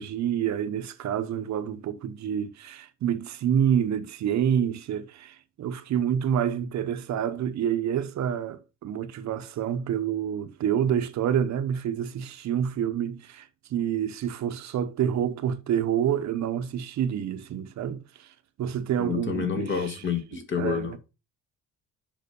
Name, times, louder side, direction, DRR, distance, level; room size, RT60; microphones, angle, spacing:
voice 1, 0.0-18.3 18.6-20.0 20.6-21.0, right 9 dB, 55° right, 0.8 m, -28 dB
voice 2, 19.0-21.0, left 6 dB, 35° left, 1.5 m, -29 dB
6.8 x 5.7 x 5.2 m
cardioid pair, 180°, 33 cm